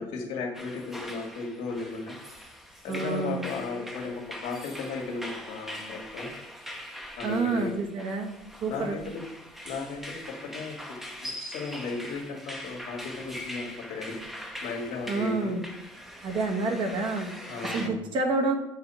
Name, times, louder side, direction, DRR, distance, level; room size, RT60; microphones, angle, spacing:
voice 1, 0.0-2.1 2.8-6.3 7.2-7.7 8.7-9.2 9.6-10.2 10.5-10.7 11.2-14.2 14.6-15.5 17.5-18.0, left 4 dB, 80° left, 1 dB, 1.7 m, -35 dB
sound 1, 0.5-17.9, equal, 5° right, 0.8 m, -42 dB
voice 2, 2.9-3.4 7.2-8.3 8.6-9.0 15.1-15.6 16.2-17.3 17.7-18.6, right 3 dB, 50° right, 3 dB, 1.2 m, -28 dB
7.7 x 2.9 x 5.5 m, 0.85 s
cardioid pair, 115°, 11 cm